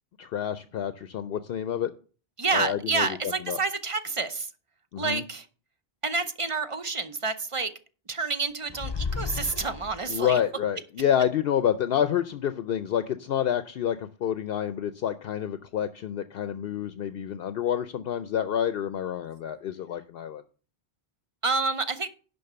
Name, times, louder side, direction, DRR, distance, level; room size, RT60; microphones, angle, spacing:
voice 1, 0.2-1.9 2.5-3.6 4.9-5.2 10.1-20.4, left 9 dB, 70° left, 0.8 m, -28 dB
voice 2, 2.4-4.5 5.0-5.5 6.0-7.7 8.1-10.4 21.4-22.1, right 4 dB, 35° right, 0.7 m, -28 dB
sound 1, 8.7-10.3, left 5 dB, 40° left, 0.4 m, -33 dB
11.0 x 4.1 x 6.7 m
omnidirectional pair, 1.0 m